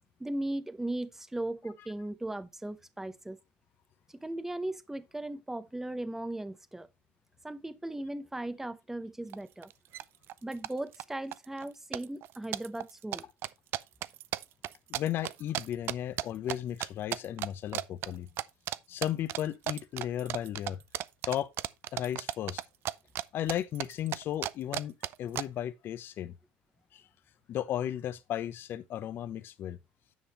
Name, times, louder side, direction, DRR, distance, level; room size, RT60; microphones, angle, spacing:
voice 1, 0.2-3.4 4.1-6.9 7.4-9.7 10.4-13.3, right 1 dB, 10° right, 0.8 m, -37 dB
sound 1, 9.3-9.4 9.6-10.0 10.3-11.0 11.3-11.7 11.9-16.6 16.8-17.5 17.7-18.1 18.4-18.8 19.0-23.2 23.5-25.4, right 13 dB, 60° right, 0.5 m, -34 dB
voice 2, 14.9-18.3 18.9-20.8 21.3-21.5 21.9-22.6 23.3-26.3 26.9-27.0 27.5-29.8, left 11 dB, 55° left, 0.9 m, -35 dB
9.6 x 5.6 x 4.2 m
supercardioid pair, 95°, 4 cm